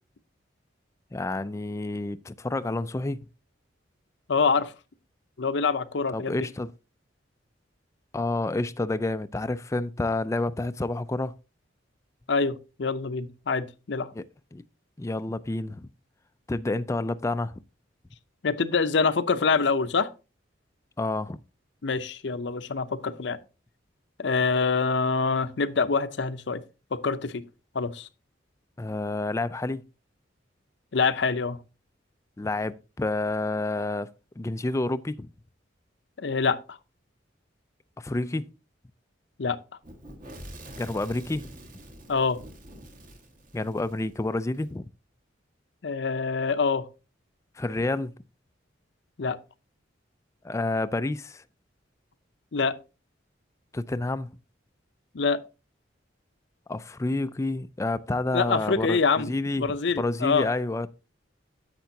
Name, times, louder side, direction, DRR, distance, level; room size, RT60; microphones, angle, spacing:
voice 1, 1.1-3.2 6.1-6.7 8.1-11.3 14.1-14.2 14.5-14.6 15.0-15.9 16.5-17.6 21.0-21.4 28.8-29.8 32.4-34.1 34.4-35.3 38.0-38.5 40.8-41.5 43.5-44.8 47.6-48.1 50.4-51.4 53.7-54.3 56.7-60.9, left 2 dB, 15° left, 0.3 m, -29 dB
voice 2, 4.3-4.7 5.4-6.4 12.3-14.1 18.4-20.1 21.8-23.4 24.2-26.6 26.9-27.4 27.7-28.1 30.9-31.6 36.2-36.8 39.4-39.6 42.1-42.4 45.8-46.8 49.2-49.4 52.5-52.8 55.1-55.4 58.3-60.5, left 4 dB, 65° left, 0.6 m, -25 dB
Fire / Explosion, 39.8-44.7, right 1 dB, 45° right, 1.6 m, -46 dB
10.5 x 7.8 x 2.7 m
head